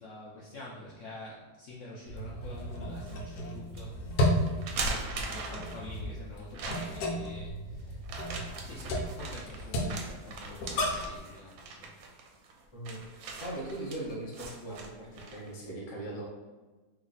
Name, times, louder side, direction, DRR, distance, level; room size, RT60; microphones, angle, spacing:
voice 1, 0.0-4.0 4.8-8.2 8.6-11.9, left 1 dB, 70° left, -5 dB, 0.7 m, -46 dB
sound 1, 2.1-11.2, equal, 85° left, 1.3 m, -34 dB
sound 2, 2.6-3.2 3.7-3.8 4.5-6.0 6.5-7.2 8.0-15.5, right 3 dB, 70° right, 0.9 m, -40 dB
voice 2, 13.4-16.3, right 1 dB, 35° left, -4 dB, 0.4 m, -39 dB
3.2 x 2.3 x 3.9 m, 1.3 s
omnidirectional pair, 1.8 m